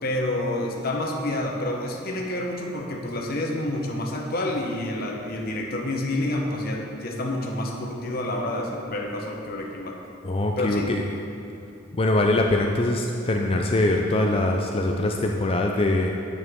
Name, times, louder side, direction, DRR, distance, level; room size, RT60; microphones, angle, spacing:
voice 1, 0.0-10.0 10.6-10.9, left 1 dB, 45° left, 0 dB, 1.0 m, -28 dB
voice 2, 10.2-11.0 11.9-16.1, left 2 dB, 25° left, 2 dB, 0.4 m, -23 dB
9.6 x 8.2 x 3.7 m, 2.8 s
head